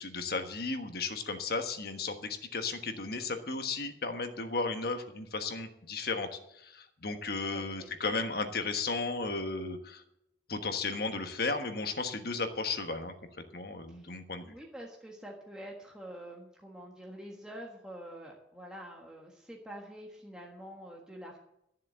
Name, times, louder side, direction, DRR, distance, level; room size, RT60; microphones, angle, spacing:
voice 1, 0.0-10.0 10.5-13.1 13.5-14.5, left 3 dB, 55° left, 6 dB, 1.3 m, -34 dB
voice 2, 7.5-7.9 8.4-8.7 13.9-14.1 14.5-21.4, equal, 5° right, -2 dB, 1.5 m, -47 dB
13.0 x 7.4 x 7.6 m, 0.79 s
head